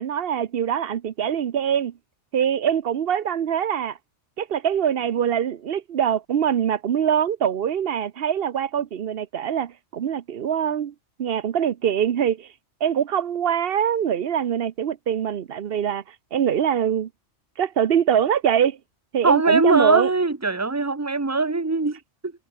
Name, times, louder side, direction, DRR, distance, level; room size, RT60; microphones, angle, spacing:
voice 1, 0.0-1.9 2.3-4.0 4.4-10.9 11.2-12.5 12.8-16.0 16.3-17.1 17.6-18.8 19.1-20.1, right 9 dB, 55° right, 0.9 m, -23 dB
voice 2, 19.2-22.3, right 3 dB, 15° right, 1.2 m, -21 dB
omnidirectional pair, 1.2 m